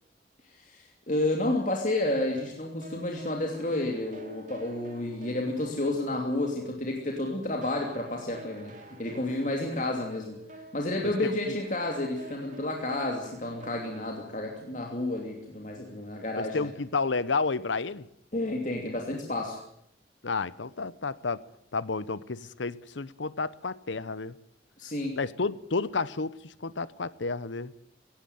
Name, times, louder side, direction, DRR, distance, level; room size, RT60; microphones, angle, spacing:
voice 1, 0.5-8.7 9.0-10.4 10.7-16.7 18.3-19.6 24.8-25.2, left 1 dB, 45° left, 2.8 m, -31 dB
sound 1, 1.9-7.1 7.5-15.2, equal, 45° right, 3.6 m, -50 dB
voice 2, 11.2-11.5 16.4-18.1 20.2-21.4 21.7-24.4 25.2-27.7, left 4 dB, 90° left, 0.9 m, -31 dB
17.5 x 17.0 x 9.3 m
head